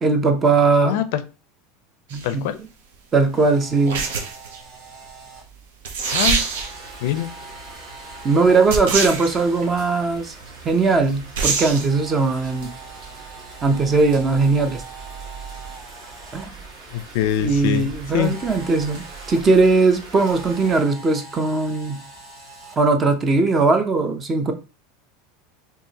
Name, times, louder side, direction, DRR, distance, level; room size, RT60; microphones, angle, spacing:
voice 1, 0.0-1.0 2.1-2.5 3.1-4.1 8.2-10.3 10.6-12.7 13.6-14.8 16.3-16.5 17.4-22.0 22.8-24.5, right 3 dB, 20° right, 0.5 m, -19 dB
voice 2, 0.8-1.2 2.2-2.6 6.1-6.4 7.0-7.3 16.9-17.9 18.1-18.3, left 11 dB, 65° left, 0.4 m, -23 dB
sound 1, 2.1-2.3 3.9-4.6 5.5-5.6 5.8-6.9 8.7-9.4 11.4-11.9, right 4 dB, 85° right, 0.8 m, -24 dB
Camera, 3.2-5.4 6.5-9.8 11.5-16.5 18.1-19.4 20.1-22.8, right 3 dB, 35° right, 1.4 m, -43 dB
sound 2, 6.0-20.8, right 4 dB, 60° right, 1.5 m, -41 dB
4.6 x 2.8 x 2.8 m
supercardioid pair, 155°, 0 cm